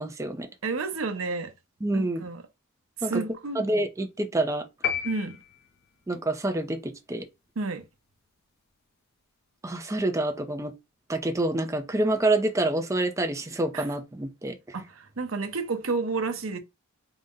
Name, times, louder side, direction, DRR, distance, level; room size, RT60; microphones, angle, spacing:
voice 1, 0.0-0.5 1.8-2.2 3.0-3.2 3.6-4.6 6.1-7.2 9.6-10.7 11.1-14.6, right 2 dB, 15° right, 0.5 m, -27 dB
voice 2, 0.6-1.5 1.9-2.4 3.0-3.6 5.0-5.4 7.6-7.8 13.7-13.9 14.7-16.6, right 3 dB, 70° right, 0.7 m, -30 dB
sound 1, 4.8-6.1, left 8 dB, 45° left, 0.5 m, -32 dB
3.9 x 2.1 x 3.6 m
head